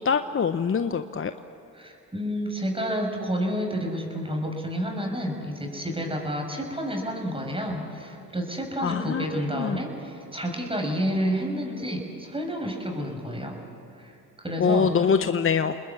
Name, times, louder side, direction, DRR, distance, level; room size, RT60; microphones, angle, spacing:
voice 1, 0.0-1.3 8.8-9.2 9.5-9.8 14.6-15.8, left 6 dB, 30° left, 10 dB, 0.9 m, -24 dB
voice 2, 1.7-13.6 14.0-14.9, equal, 15° right, 2 dB, 6.4 m, -30 dB
29.0 x 20.5 x 8.5 m, 2.6 s
hypercardioid pair, 55°, 40 cm